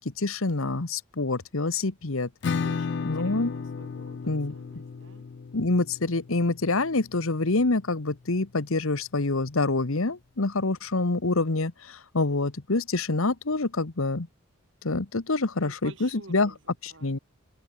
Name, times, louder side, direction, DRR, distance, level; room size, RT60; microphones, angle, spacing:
voice 1, 0.2-2.3 3.1-3.5 4.3-4.5 5.5-14.3 14.8-16.5 16.8-17.2, left 3 dB, 75° left, 1.3 m, -26 dB
Acoustic guitar / Strum, 2.4-7.9, left 5 dB, 55° left, 0.4 m, -34 dB
voice 2, 2.6-5.3 15.6-17.2, right 2 dB, 60° right, 7.1 m, -49 dB
open air
head